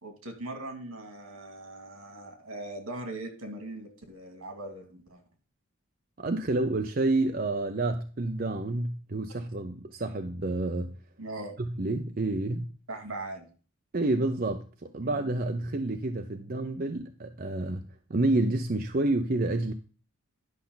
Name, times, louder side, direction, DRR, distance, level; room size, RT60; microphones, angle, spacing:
voice 1, 0.0-5.2 11.2-11.6 12.9-13.5 15.0-15.3, right 2 dB, 85° right, 2.3 m, -40 dB
voice 2, 6.2-11.0 11.6-12.7 13.9-19.7, right 2 dB, 40° right, 0.6 m, -29 dB
11.0 x 5.7 x 3.9 m
head